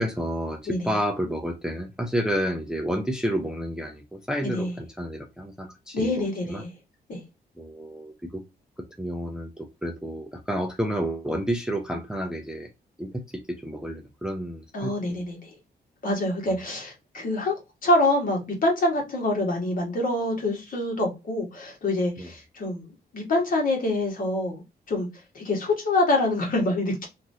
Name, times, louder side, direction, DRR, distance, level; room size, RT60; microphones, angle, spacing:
voice 1, 0.0-6.6 7.6-8.4 8.8-12.7 13.0-15.2 22.2-22.3, equal, 5° right, 0.4 m, -30 dB
voice 2, 4.4-4.7 5.9-6.7 7.1-7.2 14.7-15.5 16.0-17.5 17.8-22.9 23.1-24.6 24.9-25.1 25.3-27.0, left 2 dB, 55° left, 1.4 m, -25 dB
3.0 x 2.5 x 2.6 m
wide cardioid pair, 130°, 17 cm